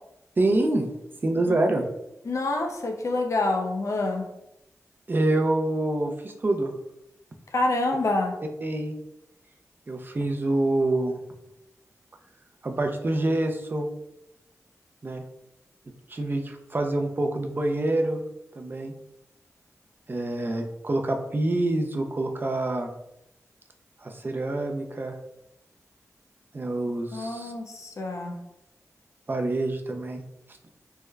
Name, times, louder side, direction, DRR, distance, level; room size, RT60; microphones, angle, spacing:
voice 1, 0.4-0.9 1.2-1.8 5.1-6.7 8.6-9.0 9.9-11.2 12.6-13.9 15.0-15.2 16.1-18.2 18.6-18.9 20.1-22.9 24.0-25.1 26.5-27.5 29.3-30.2, right 2 dB, 35° right, 3 dB, 0.5 m, -26 dB
voice 2, 2.3-4.3 7.5-8.4 27.1-28.4, left 2 dB, 60° left, 3 dB, 0.5 m, -27 dB
3.5 x 2.1 x 3.3 m, 0.86 s
wide cardioid pair, 75°, 6 cm